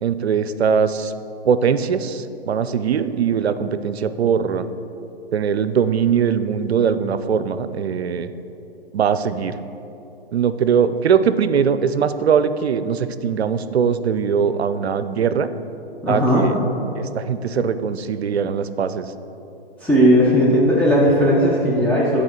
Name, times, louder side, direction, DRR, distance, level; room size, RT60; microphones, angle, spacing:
voice 1, 0.0-1.1 1.4-4.6 5.3-8.3 8.9-9.6 10.3-15.5 16.1-16.5 17.0-19.1, right 7 dB, 85° right, 12 dB, 0.5 m, -21 dB
voice 2, 16.0-16.5 19.8-22.2, equal, 5° left, -8 dB, 0.7 m, -16 dB
9.5 x 4.3 x 4.4 m, 3.0 s
hypercardioid pair, 125°, 31 cm